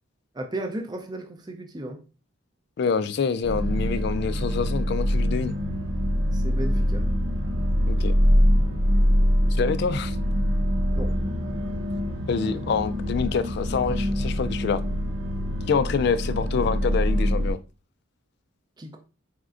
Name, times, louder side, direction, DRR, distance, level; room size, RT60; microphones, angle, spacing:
voice 1, 0.3-2.0 6.3-7.1 10.9-11.2 18.8-19.0, right 1 dB, 20° right, 0.5 m, -34 dB
voice 2, 2.8-5.6 7.9-8.1 9.5-10.2 12.3-14.8 15.7-17.6, left 5 dB, 55° left, 0.3 m, -26 dB
sound 1, 3.4-17.5, equal, 80° right, 0.9 m, -24 dB
4.2 x 3.6 x 2.5 m
head